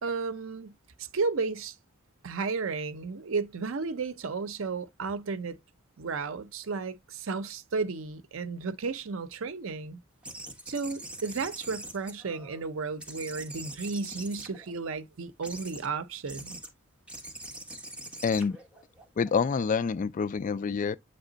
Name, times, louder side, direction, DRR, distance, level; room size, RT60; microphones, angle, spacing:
voice 1, 0.0-1.8 2.2-5.6 6.0-10.0 10.7-16.6, right 4 dB, 75° right, 0.6 m, -33 dB
sound 1, 10.2-12.7 13.0-14.9 15.4-15.9 16.3-16.7 17.1-19.6, right 1 dB, 5° right, 1.5 m, -43 dB
voice 2, 18.2-18.6 19.2-21.0, left 5 dB, 40° left, 0.3 m, -27 dB
8.1 x 3.3 x 3.9 m
head